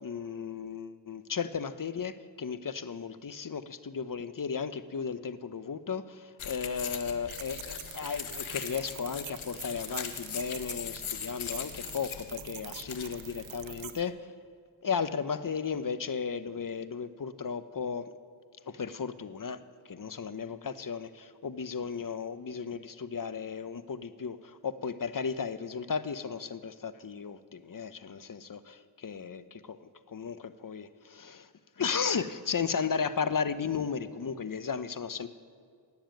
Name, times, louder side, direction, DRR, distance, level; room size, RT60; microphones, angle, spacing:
voice 1, 0.0-14.1 14.8-18.1 18.7-19.6 19.9-28.8 29.0-29.8 30.1-31.5 31.8-35.3, left 6 dB, 45° left, 13 dB, 0.9 m, -35 dB
sound 1, 6.4-13.9, left 8 dB, 85° left, 1.2 m, -41 dB
sound 2, 7.3-14.0, right 10 dB, 75° right, 0.9 m, -46 dB
18.0 x 7.3 x 9.2 m, 2.3 s
cardioid pair, 55°, 47 cm